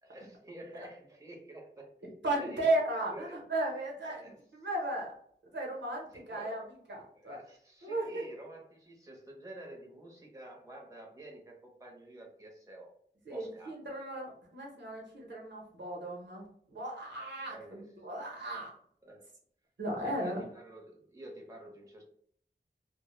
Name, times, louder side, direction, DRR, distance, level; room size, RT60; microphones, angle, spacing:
voice 1, 0.0-1.9 2.3-2.7 3.1-3.4 4.1-4.4 6.1-6.7 7.1-12.9 13.3-14.0 17.5-17.9 19.0-19.3 20.0-22.1, right 1 dB, 15° right, 0 dB, 0.7 m, -49 dB
voice 2, 2.2-5.1 5.5-6.6 6.9-7.4 7.8-8.2 13.3-18.7 19.8-20.4, right 1 dB, 75° right, -2 dB, 0.7 m, -35 dB
2.0 x 2.0 x 3.0 m, 0.63 s
wide cardioid pair, 40°, 19 cm